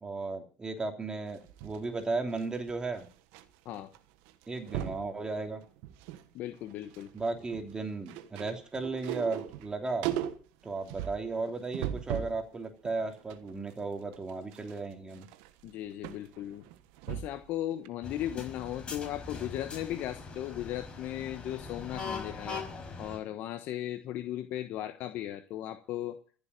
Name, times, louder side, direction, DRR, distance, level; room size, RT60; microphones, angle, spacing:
voice 1, 0.0-3.1 4.5-5.6 7.1-10.1 10.6-15.3, right 3 dB, 20° right, 5 dB, 3.1 m, -35 dB
sound 1, 1.3-3.4 3.7-4.0 4.3-5.1 5.6-6.3 6.6-12.4 12.9-17.5 17.9-18.0, right 12 dB, 75° right, 1.3 m, -39 dB
voice 2, 6.3-7.1 15.6-16.6 17.1-22.6 23.0-26.2, left 12 dB, 65° left, 9 dB, 1.1 m, -37 dB
sound 2, 18.0-23.2, left 4 dB, 30° left, 5.5 m, -41 dB
15.0 x 7.1 x 9.3 m, 0.42 s
supercardioid pair, 85°, 4 cm